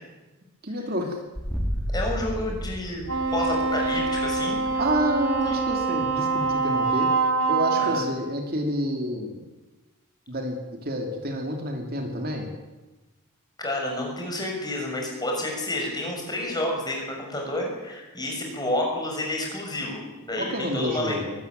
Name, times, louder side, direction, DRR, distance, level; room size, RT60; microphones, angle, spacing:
voice 1, 0.6-1.2 4.8-7.1 7.5-9.4 10.3-10.6 10.8-12.5 20.4-21.4, equal, 45° right, 3 dB, 2.9 m, -29 dB
sound 1, 1.3-6.9, equal, 5° left, 3.1 m, -34 dB
voice 2, 1.9-3.1 3.3-4.8 5.5-5.6 7.8-8.0 13.6-21.2, left 1 dB, 20° left, 0 dB, 6.3 m, -30 dB
Wind instrument woodwind instrument, 3.1-8.1, right 4 dB, 90° right, 3.5 m, -25 dB
23.0 x 14.0 x 9.4 m, 1.1 s
head